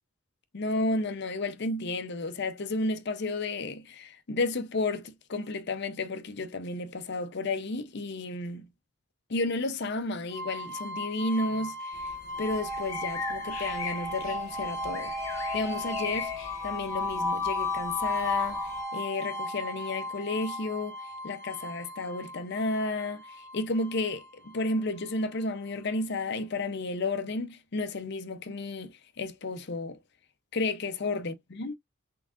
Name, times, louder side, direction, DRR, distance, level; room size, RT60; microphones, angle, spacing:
voice 1, 0.5-8.7 9.3-15.1 15.5-16.3 16.6-20.9 21.2-30.0 30.5-31.7, left 2 dB, 50° left, 0.6 m, -32 dB
sound 1, 10.3-25.2, left 2 dB, 15° left, 1.4 m, -35 dB
sound 2, 11.9-18.8, left 6 dB, 75° left, 1.1 m, -42 dB
3.9 x 3.6 x 2.4 m
head